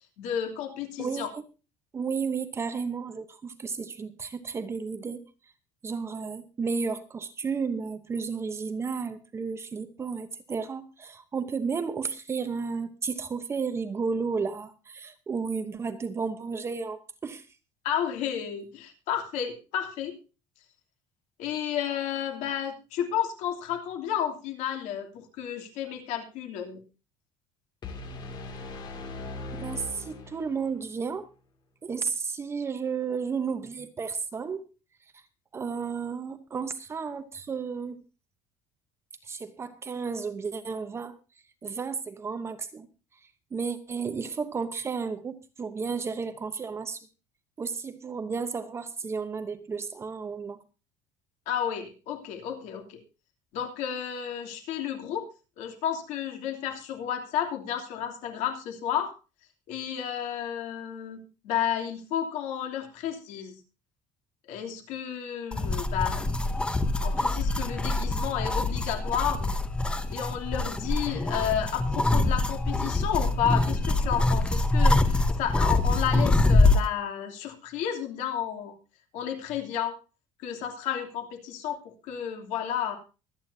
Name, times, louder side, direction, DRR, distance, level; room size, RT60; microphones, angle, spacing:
voice 1, 0.2-1.3 17.8-20.2 21.4-26.8 51.5-53.0 53.5-55.3 55.6-59.1 59.7-63.5 64.5-66.3 67.0-69.6 70.1-78.7 79.1-80.0 80.4-81.8 82.0-83.0, left 9 dB, 70° left, 3.0 m, -32 dB
voice 2, 1.0-1.4 1.9-5.2 5.8-17.5 29.6-31.3 31.8-34.7 35.5-38.0 39.2-41.1 41.6-42.9 43.5-47.1 47.6-50.6, right 5 dB, 20° right, 0.9 m, -33 dB
sound 1, 27.8-30.8, left 2 dB, 35° left, 2.5 m, -39 dB
sound 2, 65.5-76.9, left 2 dB, 10° left, 0.8 m, -25 dB
24.0 x 9.3 x 2.8 m
cardioid pair, 165°, 13 cm